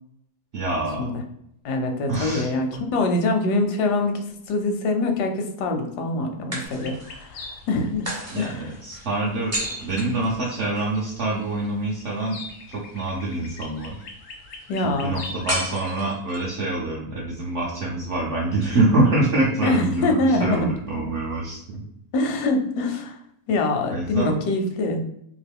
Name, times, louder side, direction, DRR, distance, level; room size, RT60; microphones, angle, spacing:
voice 1, 0.5-1.0 2.1-2.5 8.3-9.6 9.8-12.4 12.7-14.0 14.8-21.8 23.9-24.3, right 2 dB, 65° right, -4 dB, 0.7 m, -25 dB
voice 2, 1.6-4.2 4.5-8.1 8.3-8.7 14.7-15.2 19.6-20.7 22.1-23.2 23.5-25.0, left 2 dB, 85° left, 4 dB, 1.1 m, -24 dB
sound 1, 3.4-4.5 6.5-7.3 8.0-10.9 15.5-16.6, right 1 dB, 15° right, 0.5 m, -33 dB
sound 2, 6.6-15.6, left 3 dB, 65° left, 0.7 m, -42 dB
2.9 x 2.4 x 3.4 m, 0.74 s
omnidirectional pair, 1.7 m